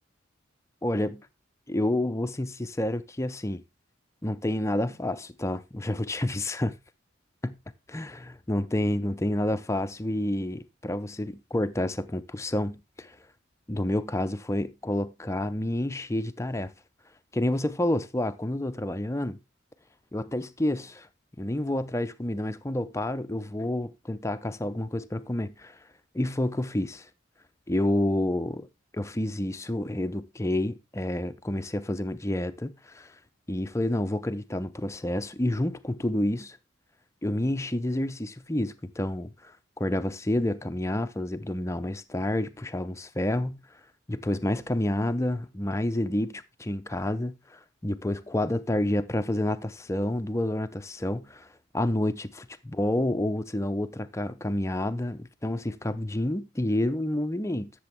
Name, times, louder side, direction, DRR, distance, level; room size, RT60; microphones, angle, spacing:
voice 1, 0.8-1.3 1.7-3.6 4.2-6.8 7.4-7.6 7.9-13.2 13.7-16.7 17.3-19.4 20.1-21.1 21.4-25.8 26.1-27.1 27.7-28.7 28.9-33.1 33.5-36.6 37.2-39.5 39.8-43.6 44.1-51.5 51.7-57.7, left 1 dB, 15° left, 0.6 m, -29 dB
12.0 x 7.0 x 3.5 m
head